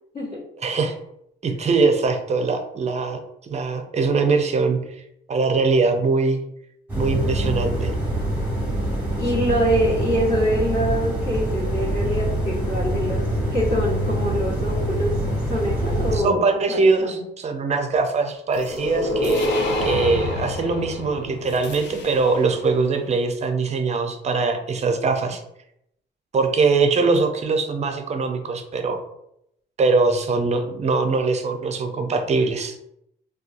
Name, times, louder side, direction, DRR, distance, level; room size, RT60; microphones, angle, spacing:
voice 1, 0.6-0.9 1.4-3.2 3.5-4.8 5.3-6.4 6.9-7.9 16.1-25.4 26.3-29.0 29.8-32.8, right 4 dB, 35° right, 5 dB, 0.5 m, -22 dB
sound 1, 6.9-16.2, right 1 dB, 10° right, 1.1 m, -25 dB
voice 2, 9.2-13.2 13.5-15.1 15.5-16.4 16.7-17.1, equal, 45° left, -7 dB, 1.2 m, -24 dB
sound 2, 18.5-22.6, left 2 dB, 65° left, 0.5 m, -27 dB
2.6 x 2.3 x 2.5 m, 0.77 s
cardioid pair, 90°, 20 cm